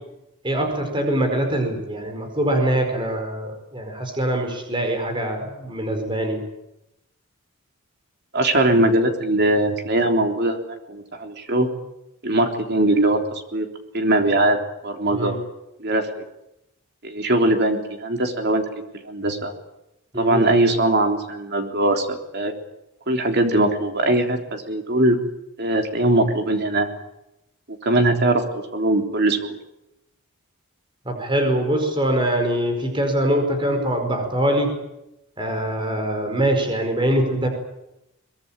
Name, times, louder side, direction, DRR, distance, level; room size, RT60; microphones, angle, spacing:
voice 1, 0.4-6.4 15.1-15.3 20.1-20.4 31.0-34.7 35.4-37.5, right 1 dB, 20° right, 4 dB, 4.8 m, -23 dB
voice 2, 8.3-10.6 10.9-11.7 12.2-13.7 13.9-14.6 14.8-15.4 15.8-16.2 17.0-19.5 20.2-22.5 23.1-25.2 25.6-26.9 27.7-29.6, right 1 dB, 45° right, 4 dB, 3.6 m, -21 dB
23.5 x 21.5 x 9.0 m, 0.88 s
head